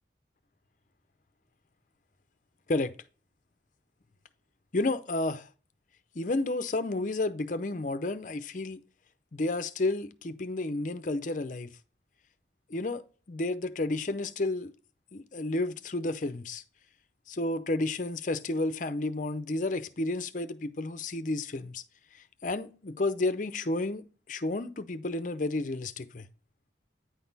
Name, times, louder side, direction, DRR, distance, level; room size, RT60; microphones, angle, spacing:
voice 1, 4.7-5.5 6.1-8.8 9.3-11.7 12.7-13.0 13.3-14.7 15.1-16.6 17.3-21.8 22.1-26.3, left 2 dB, 45° left, 0.6 m, -31 dB
9.5 x 4.1 x 4.0 m
head